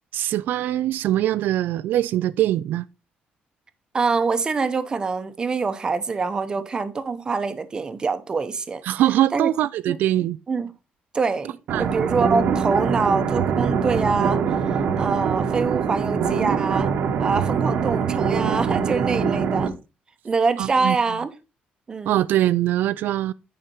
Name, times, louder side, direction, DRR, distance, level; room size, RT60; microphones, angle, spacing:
voice 1, 0.1-2.8 8.8-10.4 11.7-11.9 20.6-21.0 22.1-23.3, right 13 dB, 85° right, 0.3 m, -22 dB
voice 2, 3.9-8.8 9.3-9.5 9.9-10.0 10.5-10.7 11.1-14.4 15.0-16.9 17.2-19.7 20.2-21.3 21.9-22.2, right 4 dB, 25° right, 0.8 m, -25 dB
sound 1, 11.7-19.7, right 6 dB, 65° right, 1.0 m, -23 dB
9.7 x 5.0 x 4.3 m
cardioid pair, 170°, 3 cm